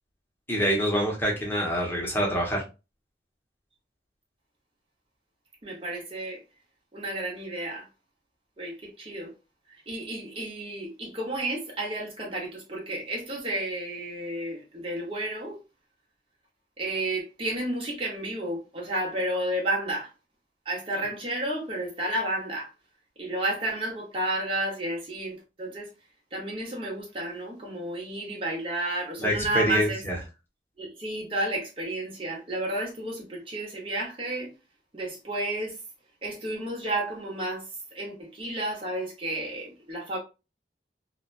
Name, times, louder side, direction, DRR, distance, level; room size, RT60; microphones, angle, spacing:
voice 1, 0.5-2.6 29.2-30.2, equal, 10° left, 0.8 m, -26 dB
voice 2, 5.6-6.4 6.9-7.8 8.6-9.3 9.9-15.6 16.8-20.1 20.7-22.7 23.2-25.9 26.3-30.0 30.8-34.5 34.9-35.7 36.2-37.6 37.9-40.2, right 1 dB, 30° right, 0.9 m, -31 dB
2.8 x 2.2 x 2.5 m
head